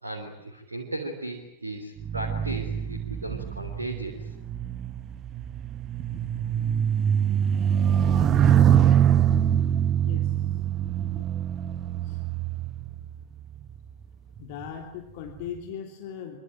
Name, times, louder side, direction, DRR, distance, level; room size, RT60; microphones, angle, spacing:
voice 1, 0.0-4.2, right 2 dB, 80° right, 2 dB, 3.4 m, -36 dB
sound 1, 2.0-13.6 14.4-14.7, right 9 dB, 30° right, 1.1 m, -24 dB
voice 2, 10.0-10.4 11.0-11.3 12.0-12.2 14.4-16.4, left 8 dB, 50° left, 4 dB, 3.2 m, -39 dB
26.0 x 24.5 x 8.9 m, 0.84 s
figure-of-eight pair, 90°, 0 cm